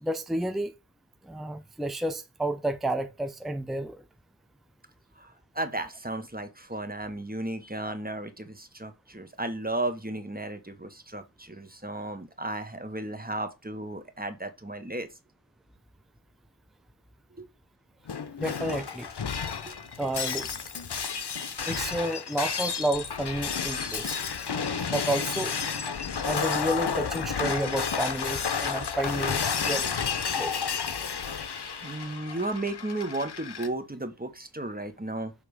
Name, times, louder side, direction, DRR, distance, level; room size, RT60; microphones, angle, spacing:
voice 1, 0.0-0.7 1.2-4.0 18.4-19.1 20.0-20.5 21.7-24.2 24.9-25.6 26.2-29.8 30.4-30.6, right 1 dB, ahead, 0.6 m, -30 dB
voice 2, 5.2-15.1 17.4-17.5 19.7-19.8 31.8-35.3, right 2 dB, 20° right, 1.1 m, -34 dB
Shatter, 18.1-33.7, left 6 dB, 70° left, 0.8 m, -31 dB
7.1 x 3.4 x 4.8 m
wide cardioid pair, 45°, 42 cm